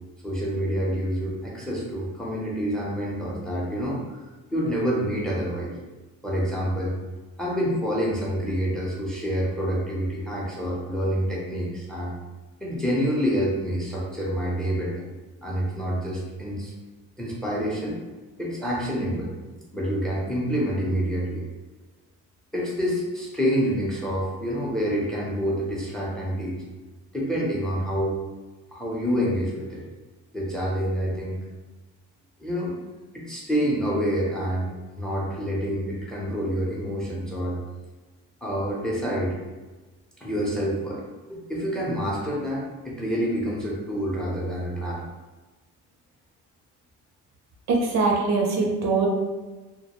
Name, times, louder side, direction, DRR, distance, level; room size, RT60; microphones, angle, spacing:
voice 1, 0.2-4.2 4.5-5.7 6.2-6.9 7.4-12.1 12.6-15.1 15.4-16.7 17.2-18.0 18.4-19.3 19.7-21.5 22.5-26.6 27.1-28.2 28.7-29.8 30.3-31.4 32.4-32.7 33.1-37.6 38.4-39.4 40.2-41.0 41.3-45.0, equal, ahead, -5 dB, 0.6 m, -27 dB
voice 2, 47.7-49.1, right 4 dB, 60° right, -1 dB, 0.6 m, -22 dB
2.2 x 2.1 x 2.9 m, 1.2 s
cardioid pair, 105°, 31 cm